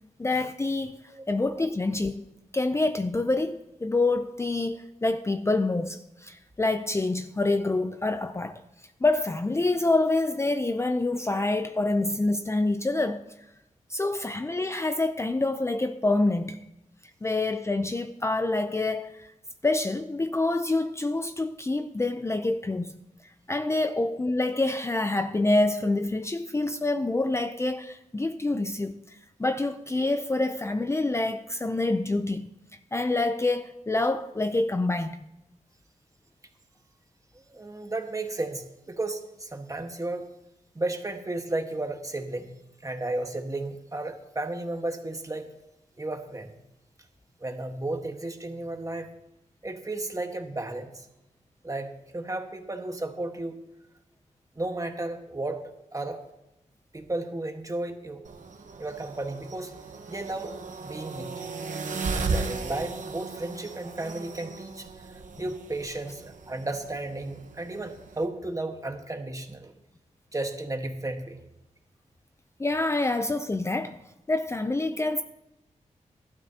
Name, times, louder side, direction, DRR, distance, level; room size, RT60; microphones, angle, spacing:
voice 1, 0.2-1.0 1.3-2.3 2.5-8.6 9.0-13.2 13.9-16.6 17.2-19.3 19.6-22.9 23.5-32.5 32.9-35.2 72.6-74.0 74.3-75.2, left 2 dB, 20° left, 0.5 m, -27 dB
voice 2, 37.3-40.3 40.7-45.5 46.0-46.6 47.4-49.1 49.6-51.1 51.6-53.6 54.6-55.6 55.9-56.2 56.9-58.2 58.8-59.7 60.1-61.5 62.1-64.9 65.4-69.7 70.3-71.4, right 2 dB, 25° right, 1.5 m, -33 dB
sound 1, 58.2-68.2, right 4 dB, 75° right, 1.2 m, -36 dB
18.5 x 12.5 x 2.9 m
wide cardioid pair, 75°, 13 cm